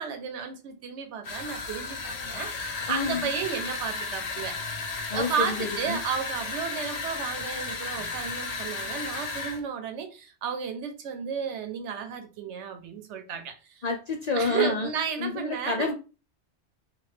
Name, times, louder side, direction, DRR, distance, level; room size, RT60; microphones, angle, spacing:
voice 1, 0.0-4.6 5.1-13.8 14.4-15.9, right 7 dB, 90° right, 1.0 m, -33 dB
sound 1, 1.2-9.6, left 4 dB, 75° left, 0.9 m, -34 dB
voice 2, 2.9-3.3 5.1-6.0 13.8-14.9 15.2-15.9, left 4 dB, 55° left, 0.4 m, -29 dB
2.9 x 2.4 x 3.2 m
omnidirectional pair, 1.1 m